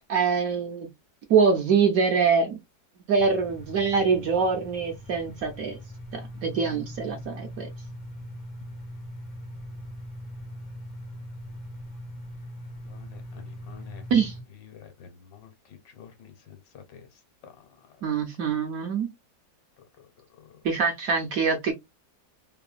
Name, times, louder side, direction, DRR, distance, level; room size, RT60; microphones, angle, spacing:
voice 1, 0.1-0.9 1.3-2.6 3.1-5.8 6.1-7.7 14.1-14.3 18.0-19.1 20.6-21.7, right 5 dB, 65° right, 0.9 m, -24 dB
sound 1, 3.2-14.4, equal, 55° left, 0.5 m, -41 dB
voice 2, 12.8-14.0 14.6-17.1 17.4-17.8 18.1-18.2 20.4-20.6, left 8 dB, 70° left, 1.3 m, -49 dB
3.2 x 2.1 x 2.4 m
omnidirectional pair, 2.0 m